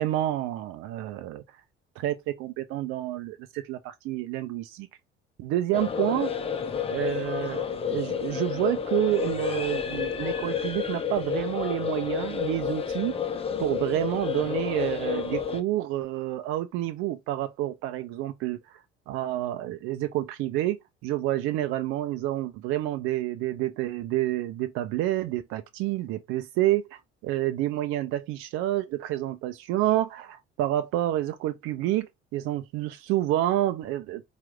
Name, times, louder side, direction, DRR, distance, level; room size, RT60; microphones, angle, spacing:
voice 1, 0.0-1.4 2.0-4.9 5.4-6.4 6.9-34.2, right 14 dB, 45° right, 0.4 m, -29 dB
sound 1, 5.7-15.6, left 7 dB, 20° left, 0.6 m, -30 dB
4.5 x 2.3 x 3.5 m
figure-of-eight pair, 55°, 31 cm